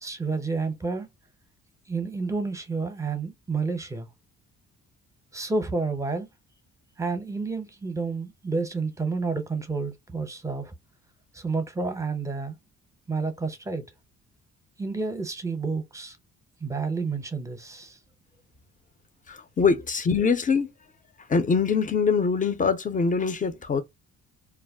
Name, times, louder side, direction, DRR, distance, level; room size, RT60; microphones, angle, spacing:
voice 1, 0.0-1.1 1.9-4.1 5.3-6.3 7.0-10.7 11.3-12.6 13.1-13.9 14.8-16.2 16.6-18.0, right 4 dB, 10° right, 0.7 m, -30 dB
voice 2, 19.3-20.7 21.3-23.8, left 5 dB, 25° left, 0.6 m, -23 dB
2.3 x 2.0 x 3.5 m
cardioid pair, 90°, 30 cm